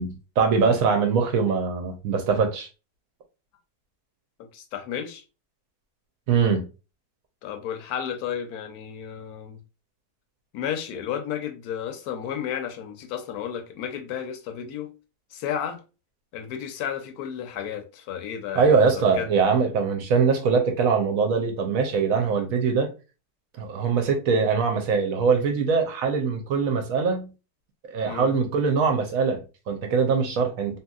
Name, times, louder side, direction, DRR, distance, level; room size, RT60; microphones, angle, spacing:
voice 1, 0.0-2.7 6.3-6.6 18.5-22.9 23.6-27.3 27.9-30.8, right 5 dB, 70° right, 0.9 m, -22 dB
voice 2, 4.4-5.2 7.4-9.6 10.5-14.9 15.3-15.8 16.3-19.3 28.1-28.3, left 9 dB, 75° left, 1.0 m, -32 dB
2.9 x 2.7 x 2.3 m
omnidirectional pair, 1.7 m